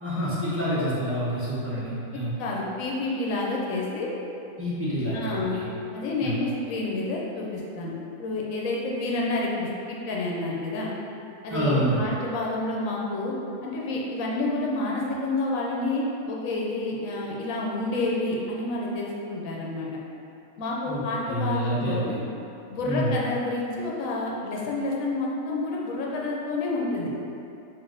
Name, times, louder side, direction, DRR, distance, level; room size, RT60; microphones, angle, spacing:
voice 1, 0.0-2.3 4.6-5.6 6.2-6.3 11.5-12.0 20.9-21.0 21.3-22.2 22.9-23.1, equal, 10° right, -12 dB, 0.7 m, -27 dB
voice 2, 2.4-4.1 5.1-5.6 5.9-7.9 8.2-10.9 11.4-13.3 13.6-19.9 20.6-22.1 22.7-27.1, left 2 dB, 75° left, -3 dB, 1.0 m, -29 dB
3.3 x 2.7 x 3.8 m, 2.8 s
omnidirectional pair, 1.5 m